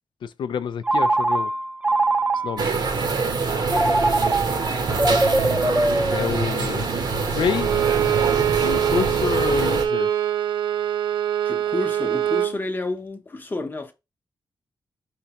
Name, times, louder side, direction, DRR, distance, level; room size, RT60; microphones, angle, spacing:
voice 1, 0.2-1.5 2.4-2.7 6.1-6.9 7.3-7.7 8.6-10.1, left 7 dB, 75° left, 0.4 m, -27 dB
Telephone, 0.8-2.8 3.7-6.7, right 2 dB, 15° right, 0.5 m, -22 dB
sound 1, 2.6-9.9, right 4 dB, 60° right, 0.9 m, -25 dB
Bowed string instrument, 7.5-12.6, right 10 dB, 90° right, 0.5 m, -23 dB
voice 2, 11.4-13.9, left 2 dB, 25° left, 0.8 m, -30 dB
5.1 x 3.3 x 2.9 m
wide cardioid pair, 100°, 8 cm